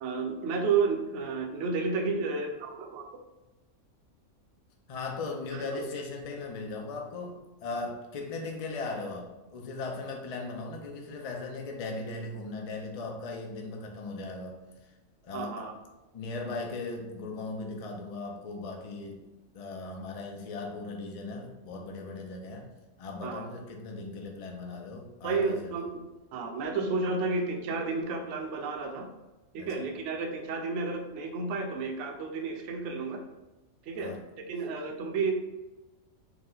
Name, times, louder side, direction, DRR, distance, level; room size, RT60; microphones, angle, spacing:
voice 1, 0.0-3.1 5.5-5.8 15.3-15.7 23.2-23.5 25.2-26.0 26.3-29.1 29.5-33.2 33.9-34.1 34.5-35.3, right 4 dB, 65° right, 4 dB, 0.8 m, -31 dB
voice 2, 4.9-14.6 14.8-14.9 15.2-15.7 16.1-19.2 19.5-22.7 23.0-25.9 29.6-29.9 33.9-34.2, left 3 dB, 55° left, 1 dB, 0.4 m, -38 dB
4.9 x 2.1 x 3.7 m, 1.1 s
omnidirectional pair, 1.4 m